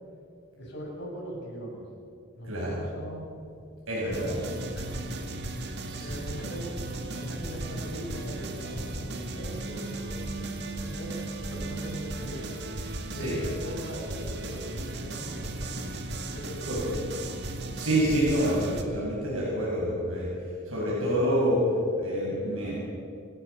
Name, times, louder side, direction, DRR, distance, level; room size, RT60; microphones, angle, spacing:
voice 1, 0.5-1.8 2.3-3.3 3.9-4.4 4.7-5.0 5.5-5.6 6.0-6.8 7.1-10.1 10.8-12.5 13.0-17.0, equal, 55° left, -3 dB, 7.9 m, -40 dB
voice 2, 2.4-2.9 3.9-4.4 5.8-6.1 13.1-13.4 16.7-16.8 17.7-20.3 20.7-21.7 21.9-22.8, equal, 90° right, -6 dB, 7.1 m, -27 dB
sound 1, 4.1-18.8, right 2 dB, 55° right, 2.1 m, -36 dB
28.5 x 16.5 x 7.1 m, 2.4 s
head